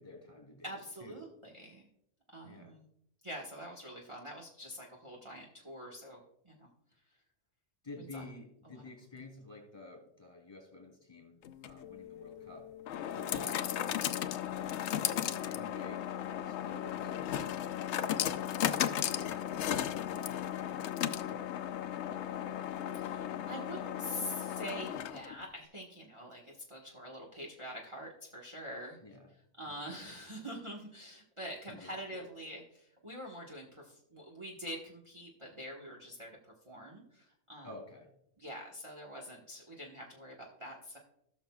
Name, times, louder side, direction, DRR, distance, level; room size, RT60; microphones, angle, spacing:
voice 1, 0.0-1.2 2.4-2.7 7.8-12.7 13.1-14.3 15.0-21.5 29.0-29.3 29.7-30.0 31.7-32.3 37.6-38.1, left 2 dB, 20° left, 1 dB, 3.4 m, -51 dB
voice 2, 0.6-1.9 2.3-2.9 3.2-6.7 8.1-8.2 8.6-8.8 22.9-29.0 29.6-37.7 38.4-41.0, equal, 25° right, -1 dB, 1.4 m, -45 dB
sound 1, 11.4-25.4, left 10 dB, 70° left, 0.8 m, -35 dB
17.5 x 6.4 x 2.3 m, 0.73 s
omnidirectional pair, 1.3 m